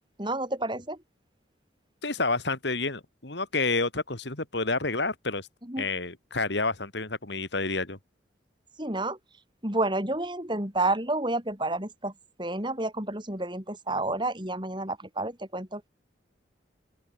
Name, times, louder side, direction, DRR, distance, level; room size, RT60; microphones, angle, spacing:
voice 1, 0.2-1.0 5.6-5.9 8.8-9.2 9.6-12.1 12.4-15.8, right 2 dB, 25° right, 4.5 m, -30 dB
voice 2, 2.0-5.5 5.8-8.0, left 3 dB, 65° left, 3.0 m, -29 dB
open air
head